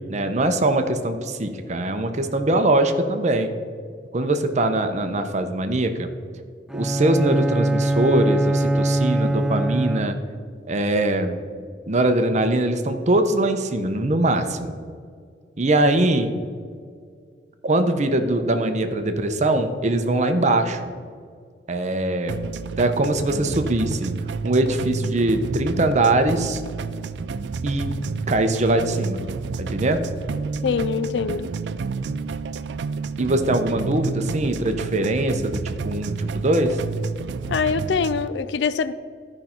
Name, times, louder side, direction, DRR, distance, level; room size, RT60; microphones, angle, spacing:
voice 1, 0.1-3.5 4.1-6.1 6.7-10.2 10.7-11.4 11.9-14.8 15.6-16.3 17.6-20.8 21.7-22.4 22.8-24.1 24.4-26.6 27.6-29.2 29.6-30.0 33.2-36.8, right 1 dB, 40° right, 7 dB, 0.7 m, -22 dB
Bowed string instrument, 6.7-10.4, right 1 dB, 5° right, 0.3 m, -22 dB
sound 1, 22.3-38.3, right 4 dB, 80° right, 0.4 m, -30 dB
voice 2, 30.6-31.5 37.5-38.9, left 6 dB, 75° left, 14 dB, 0.4 m, -23 dB
13.5 x 5.4 x 4.4 m, 2.1 s
head